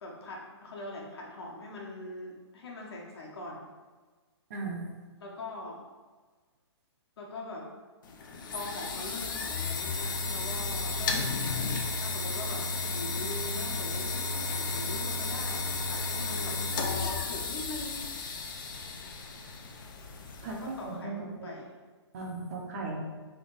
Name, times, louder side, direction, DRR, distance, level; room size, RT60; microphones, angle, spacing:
voice 1, 0.0-3.6 5.2-5.8 7.2-7.7 8.5-18.1 20.4-21.7, left 2 dB, 60° left, -3 dB, 1.3 m, -42 dB
voice 2, 4.5-4.9 20.4-21.6 22.1-23.0, right 3 dB, 35° right, -1 dB, 0.7 m, -37 dB
sound 1, 8.0-20.8, left 3 dB, 45° left, 0.5 m, -33 dB
3.8 x 3.5 x 4.0 m, 1.4 s
hypercardioid pair, 165°, 15 cm